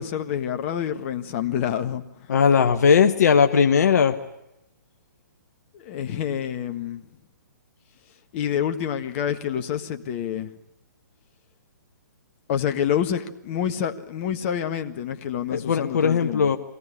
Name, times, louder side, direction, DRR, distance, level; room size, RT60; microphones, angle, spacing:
voice 1, 0.0-2.0 5.7-7.0 8.3-10.5 12.5-16.5, left 9 dB, 40° left, 8 dB, 1.5 m, -27 dB
voice 2, 2.3-4.2 15.5-16.6, left 6 dB, 60° left, 6 dB, 1.2 m, -18 dB
23.0 x 17.5 x 9.9 m, 0.85 s
figure-of-eight pair, 130°, 10 cm